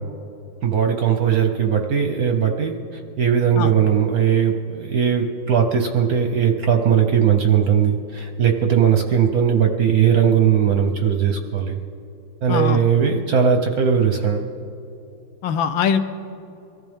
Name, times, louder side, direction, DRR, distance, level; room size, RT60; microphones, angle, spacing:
voice 1, 0.6-11.8 12.4-14.5, right 7 dB, 60° right, 4 dB, 1.0 m, -19 dB
voice 2, 12.5-12.8 15.4-16.0, left 7 dB, 75° left, 9 dB, 1.3 m, -21 dB
23.0 x 14.5 x 3.6 m, 2.8 s
omnidirectional pair, 2.3 m